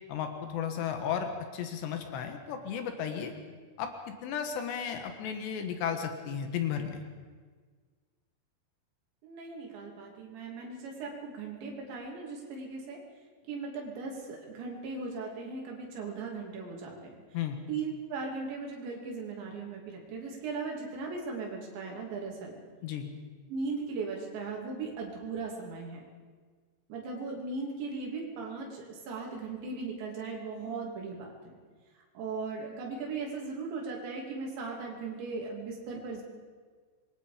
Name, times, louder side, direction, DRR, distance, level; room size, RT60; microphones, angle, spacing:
voice 1, 0.1-3.3 3.8-7.0 17.3-17.6 22.8-23.1, left 8 dB, 75° left, 6 dB, 3.7 m, -34 dB
voice 2, 9.2-13.0 13.5-17.1 17.7-22.6 23.5-26.0 26.9-31.6 32.2-36.2, right 4 dB, 85° right, -1 dB, 5.2 m, -38 dB
26.0 x 22.0 x 5.1 m, 1.5 s
omnidirectional pair, 5.0 m